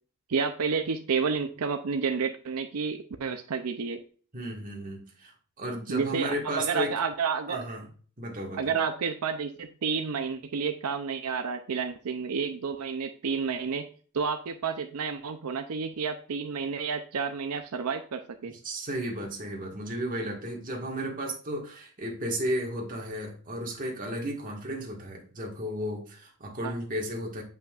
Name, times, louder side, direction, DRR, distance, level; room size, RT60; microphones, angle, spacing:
voice 1, 0.3-4.0 5.9-7.6 8.6-13.9 14.1-18.5 26.6-26.7, right 5 dB, 85° right, 7 dB, 0.5 m, -30 dB
voice 2, 4.3-7.0 7.5-7.9 8.2-8.8 18.4-27.4, right 1 dB, 35° right, 0 dB, 1.6 m, -34 dB
7.7 x 5.6 x 2.4 m, 0.40 s
head